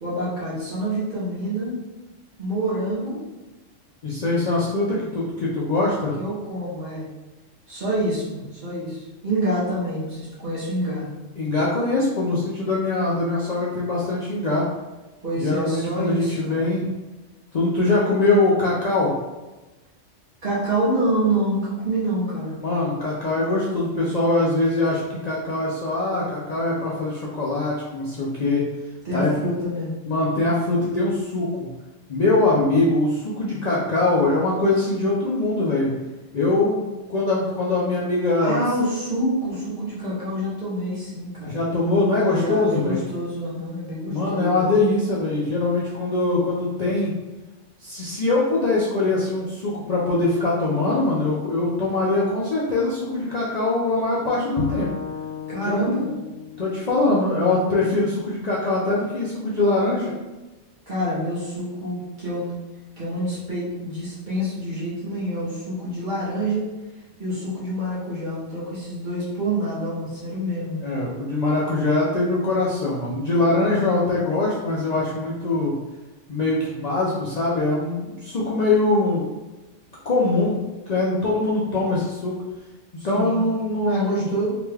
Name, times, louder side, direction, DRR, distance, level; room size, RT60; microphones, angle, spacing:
voice 1, 0.0-1.8 2.4-3.2 6.2-7.1 7.7-11.1 15.2-16.7 20.4-22.5 29.0-29.9 32.5-32.7 38.4-41.6 42.3-44.8 55.5-56.1 60.9-62.5 63.0-66.6 67.2-70.8 83.0-83.5 83.8-84.5, right 1 dB, 45° right, -9 dB, 0.9 m, -27 dB
voice 2, 4.0-6.1 11.4-14.6 15.3-16.9 17.5-19.1 22.6-28.6 29.1-29.3 30.1-31.5 32.1-35.9 36.3-38.6 41.4-43.0 44.1-47.1 47.8-54.9 55.6-55.9 56.6-60.1 70.8-75.7 76.3-79.3 80.0-80.6 80.9-82.4 83.0-84.3, left 2 dB, 60° left, -6 dB, 0.4 m, -22 dB
Bowed string instrument, 54.6-57.8, left 7 dB, 85° left, 1.0 m, -34 dB
2.9 x 2.3 x 3.2 m, 1.1 s
omnidirectional pair, 1.3 m